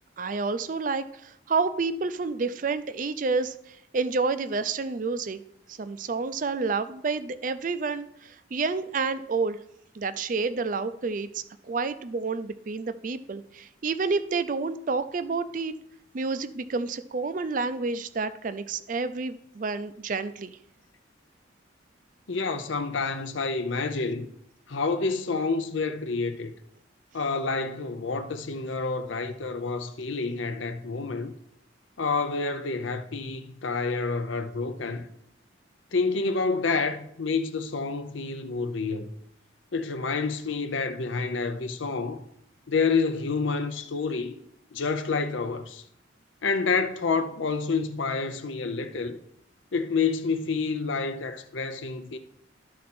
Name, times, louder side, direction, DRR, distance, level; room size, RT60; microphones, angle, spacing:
voice 1, 0.2-5.4 5.7-9.6 9.9-15.7 16.1-20.6, right 4 dB, 40° right, 0.4 m, -29 dB
voice 2, 22.3-24.3 24.7-26.5 27.1-31.3 32.0-35.1 35.9-39.1 39.7-42.2 42.7-44.4 44.7-45.8 46.4-49.2 49.7-52.2, left 4 dB, 75° left, 0.7 m, -28 dB
12.0 x 4.2 x 4.3 m
head